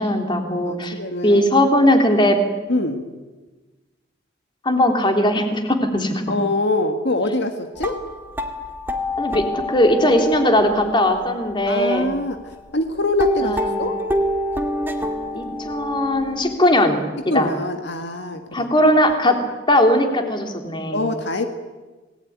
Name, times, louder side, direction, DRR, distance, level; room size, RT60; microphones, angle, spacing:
voice 1, 0.0-0.9 1.2-2.4 4.6-6.2 9.2-12.0 13.4-13.8 15.3-17.5 18.5-19.3 19.7-21.0, left 1 dB, 25° left, 5 dB, 3.3 m, -19 dB
voice 2, 0.7-1.4 2.7-3.0 6.3-8.0 11.7-14.0 17.3-18.7 20.9-21.4, left 2 dB, 65° left, 6 dB, 1.8 m, -24 dB
sound 1, 7.8-12.7 13.2-16.6, left 1 dB, 10° right, 2.2 m, -27 dB
28.0 x 19.5 x 9.5 m, 1.2 s
head